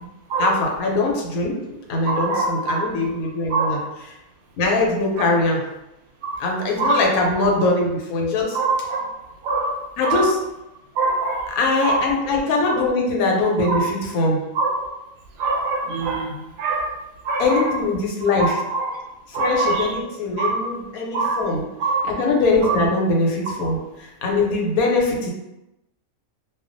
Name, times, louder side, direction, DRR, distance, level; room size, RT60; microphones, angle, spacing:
voice 1, 0.4-1.6 1.9-3.8 4.6-5.6 6.4-8.6 10.0-10.4 11.6-14.4 17.4-18.5 19.3-21.6 22.1-25.3, left 2 dB, 80° left, -1 dB, 1.1 m, -22 dB
voice 2, 2.0-2.8 3.5-3.7 6.2-6.4 6.8-7.1 7.4-7.5 8.5-9.0 9.4-9.8 10.0-10.3 11.0-11.5 11.8-12.1 12.7-12.8 13.6-13.8 14.5-14.8 15.4-16.9 17.2-17.7 18.4-18.9 19.3-19.9 20.4-20.7 21.1-21.4 21.8-22.1 22.6-22.8, right 3 dB, 85° right, 1 dB, 1.0 m, -23 dB
2.3 x 2.3 x 2.5 m, 0.93 s
omnidirectional pair, 1.5 m